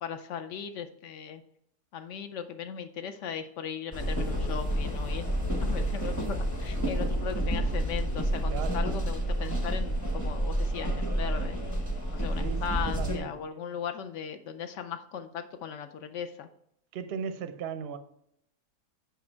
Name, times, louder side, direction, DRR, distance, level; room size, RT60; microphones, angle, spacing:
voice 1, 0.0-1.4 1.9-5.2 5.6-11.6 12.1-16.5, left 7 dB, 65° left, 0.7 m, -38 dB
sound 1, 3.9-13.2, right 1 dB, 15° left, 0.8 m, -29 dB
voice 2, 8.5-8.9 12.4-13.3 16.9-18.0, right 7 dB, 60° right, 0.6 m, -37 dB
7.0 x 5.1 x 4.4 m
omnidirectional pair, 1.7 m